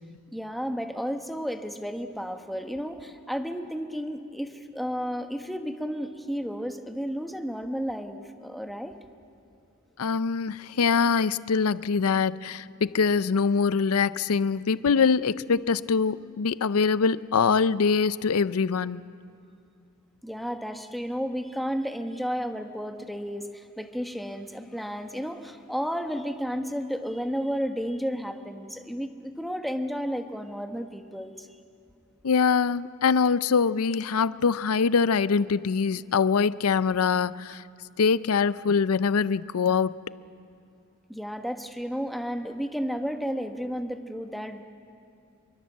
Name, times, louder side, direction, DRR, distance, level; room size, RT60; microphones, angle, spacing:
voice 1, 0.3-9.0 20.2-31.5 41.1-44.6, equal, ahead, 1.1 m, -32 dB
voice 2, 10.0-19.0 32.2-37.6 38.0-40.0, left 5 dB, 85° left, 0.5 m, -23 dB
25.5 x 23.5 x 7.3 m
head